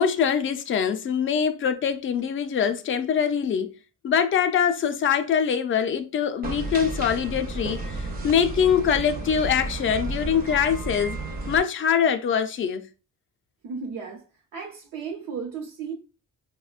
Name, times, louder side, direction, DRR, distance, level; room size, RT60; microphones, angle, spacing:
voice 1, 0.0-3.7 4.0-11.2 11.5-12.9, left 7 dB, 40° left, 0.4 m, -23 dB
sound 1, 6.4-11.6, right 2 dB, 30° right, 0.5 m, -32 dB
voice 2, 13.6-14.2 14.5-15.9, right 5 dB, 85° right, 0.8 m, -34 dB
5.0 x 2.1 x 2.3 m
cardioid pair, 145°, 33 cm